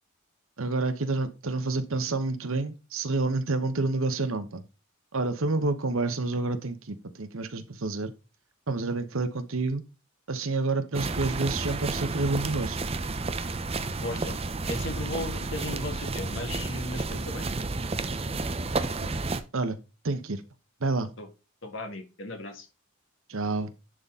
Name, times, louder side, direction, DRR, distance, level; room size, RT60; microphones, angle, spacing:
voice 1, 0.6-4.6 5.1-8.1 8.7-9.8 10.3-12.8 19.0-19.1 19.5-19.8 20.0-20.4 20.8-21.1 23.3-23.7, right 3 dB, 65° right, 1.0 m, -28 dB
sound 1, 10.9-19.4, right 3 dB, 25° right, 0.6 m, -31 dB
voice 2, 14.0-14.3 14.7-17.5 21.2-21.3 21.6-22.7, left 1 dB, 55° left, 1.8 m, -36 dB
11.0 x 4.1 x 3.7 m
head